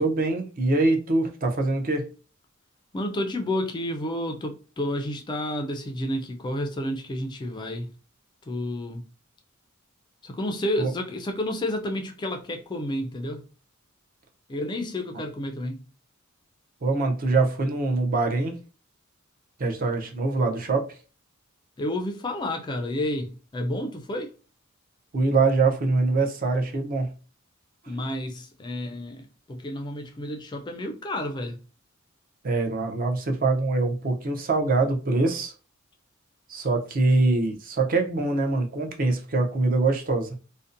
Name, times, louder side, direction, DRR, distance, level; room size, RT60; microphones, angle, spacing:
voice 1, 0.0-2.1 10.8-10.9 16.8-18.6 19.6-20.9 25.1-27.1 32.4-35.5 36.5-40.3, right 3 dB, 40° right, 0.5 m, -24 dB
voice 2, 2.9-7.9 8.5-9.0 10.2-13.5 14.5-15.8 21.8-24.3 27.9-31.6, left 1 dB, 20° left, 0.3 m, -30 dB
2.6 x 2.1 x 2.5 m
head